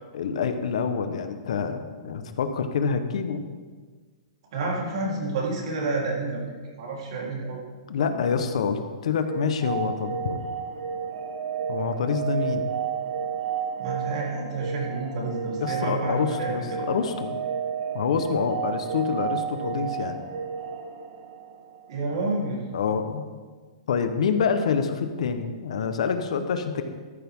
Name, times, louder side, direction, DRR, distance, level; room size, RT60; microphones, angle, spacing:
voice 1, 0.1-3.5 7.9-10.4 11.7-12.7 15.6-17.4 17.9-20.2 22.7-23.3 23.9-26.8, left 6 dB, 75° left, 8 dB, 1.1 m, -27 dB
voice 2, 4.5-6.4 6.7-7.6 8.0-8.1 13.8-16.8 21.9-22.6, right 3 dB, 60° right, -3 dB, 3.8 m, -29 dB
sound 1, 9.2-22.0, right 7 dB, 85° right, 1.7 m, -32 dB
13.5 x 10.5 x 3.8 m, 1.4 s
hypercardioid pair, 160°, 3 cm